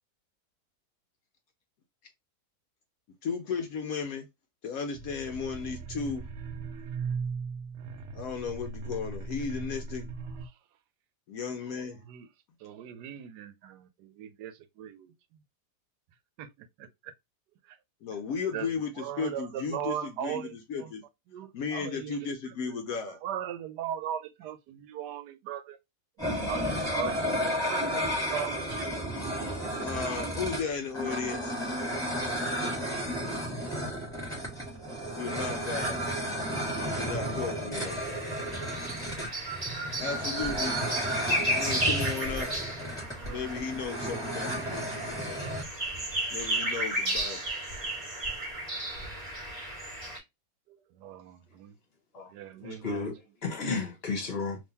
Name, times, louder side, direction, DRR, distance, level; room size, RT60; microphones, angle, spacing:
voice 1, 3.2-4.3 4.6-6.2 8.1-10.1 11.3-12.0 18.0-21.0 21.5-23.2 29.8-31.7 35.1-36.0 36.8-38.2 40.0-40.8 41.5-42.5 43.3-45.6 46.3-47.4, left 5 dB, 70° left, 0.9 m, -35 dB
sound 1, 4.9-10.5, right 5 dB, 65° right, 0.7 m, -38 dB
voice 2, 12.6-15.4 16.4-17.1 17.6-17.8 18.5-20.9 21.3-22.8 23.1-25.8 26.2-29.0 32.7-33.3 43.1-43.5 48.1-48.4 48.7-48.8 49.8-49.9 50.7-51.7 52.3-53.0, right 10 dB, 85° right, 1.2 m, -39 dB
sound 2, 26.2-45.6, equal, ahead, 1.4 m, -33 dB
sound 3, 37.8-50.2, right 1 dB, 25° right, 1.5 m, -33 dB
voice 3, 52.6-54.6, left 4 dB, 40° left, 1.3 m, -33 dB
3.6 x 2.9 x 2.7 m
omnidirectional pair, 1.7 m